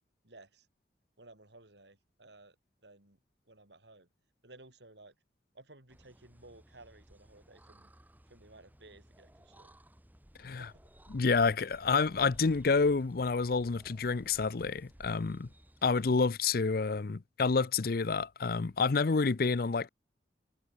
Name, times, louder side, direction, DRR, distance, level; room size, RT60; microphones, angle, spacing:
voice 1, 0.2-0.7 1.2-2.6 2.8-3.2 3.5-4.1 4.4-5.1 5.5-7.9 8.3-9.8 10.6-10.8, right 2 dB, 75° right, 5.2 m, -56 dB
sound 1, 5.9-16.0, equal, 10° right, 1.9 m, -58 dB
voice 2, 11.1-15.5 15.8-19.9, left 4 dB, 55° left, 0.6 m, -29 dB
head